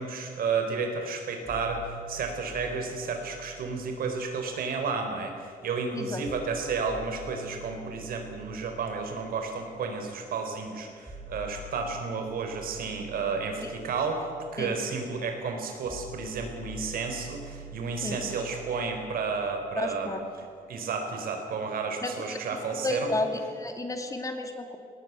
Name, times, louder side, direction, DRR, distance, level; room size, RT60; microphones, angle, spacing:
voice 1, 0.0-20.2 20.7-23.1, right 4 dB, 75° right, 4 dB, 4.1 m, -32 dB
sound 1, 1.4-5.4 6.2-20.3, right 1 dB, 5° right, 6.3 m, -47 dB
voice 2, 19.8-20.2 22.0-22.4 22.8-23.3 23.5-24.8, left 2 dB, 20° left, 5 dB, 2.3 m, -32 dB
18.5 x 18.0 x 9.3 m, 2.1 s
cardioid pair, 120°, 15 cm